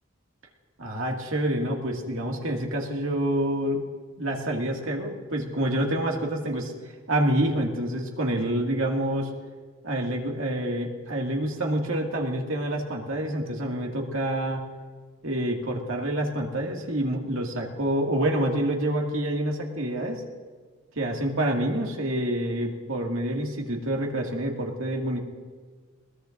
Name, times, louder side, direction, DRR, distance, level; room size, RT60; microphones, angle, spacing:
voice 1, 0.8-3.8 4.2-6.7 7.1-9.3 9.8-14.6 15.2-20.2 21.0-25.2, right 1 dB, 80° right, 0 dB, 2.2 m, -27 dB
21.5 x 19.0 x 2.6 m, 1.5 s
head